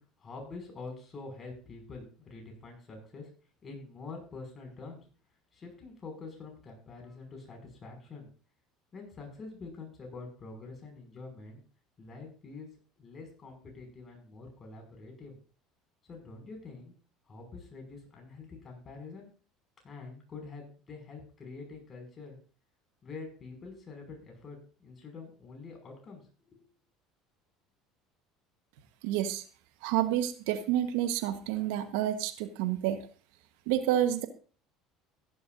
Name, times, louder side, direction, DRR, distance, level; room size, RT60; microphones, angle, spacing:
voice 1, 0.0-3.3 3.6-5.1 5.5-8.3 8.9-11.6 12.0-12.7 13.0-15.4 16.0-16.9 17.3-19.3 19.8-22.4 23.0-26.2 26.5-26.7, left 3 dB, 35° left, 2 dB, 6.0 m, -46 dB
voice 2, 29.0-29.4 29.8-33.0 33.7-34.3, right 12 dB, 80° right, 9 dB, 1.2 m, -29 dB
15.0 x 11.5 x 2.6 m, 0.39 s
supercardioid pair, 85°, 0 cm